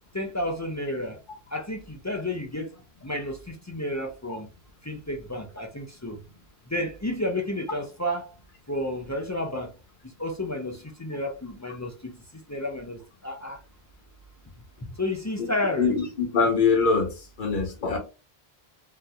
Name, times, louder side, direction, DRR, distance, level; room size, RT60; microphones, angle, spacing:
voice 1, 0.1-1.2 1.5-2.7 3.0-4.5 4.8-6.2 6.7-8.3 8.7-9.7 10.0-13.6 14.9-16.0 17.9-18.0, left 1 dB, 25° left, 0.3 m, -31 dB
voice 2, 15.8-18.0, left 5 dB, 55° left, 1.0 m, -23 dB
3.6 x 2.7 x 2.3 m
omnidirectional pair, 1.0 m